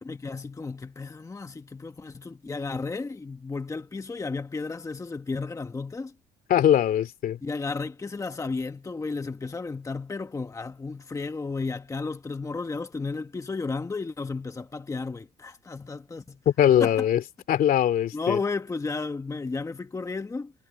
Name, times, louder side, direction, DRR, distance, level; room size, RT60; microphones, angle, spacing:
voice 1, 0.0-6.1 7.4-16.4 16.8-16.9 18.1-20.5, left 4 dB, 20° left, 1.2 m, -33 dB
voice 2, 6.5-7.4 16.5-17.2 17.5-18.4, left 10 dB, 60° left, 2.8 m, -21 dB
cardioid pair, 110°, 17 cm